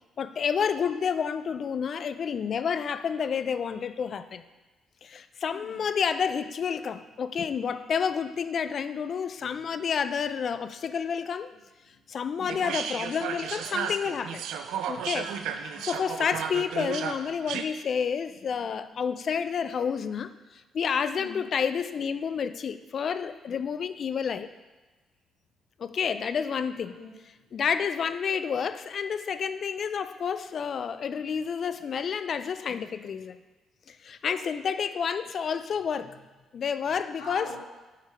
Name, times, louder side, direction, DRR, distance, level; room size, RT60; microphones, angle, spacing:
voice 1, 0.2-4.4 5.0-11.5 12.1-14.4 14.8-15.3 15.8-24.5 25.8-26.9 27.5-33.4 33.9-36.2 36.5-37.5, left 7 dB, 60° left, 12 dB, 0.4 m, -30 dB
voice 2, 5.5-5.9 9.4-9.8 11.8-12.0 12.3-12.7 15.3-15.6 21.1-21.4 26.8-27.5 34.1-34.4 36.0-36.2 36.8-37.6, left 2 dB, 90° left, -5 dB, 1.5 m, -46 dB
sound 1, 12.5-17.6, right 8 dB, 80° right, 0.4 m, -34 dB
9.2 x 4.6 x 3.5 m, 1.2 s
supercardioid pair, 60°, 0 cm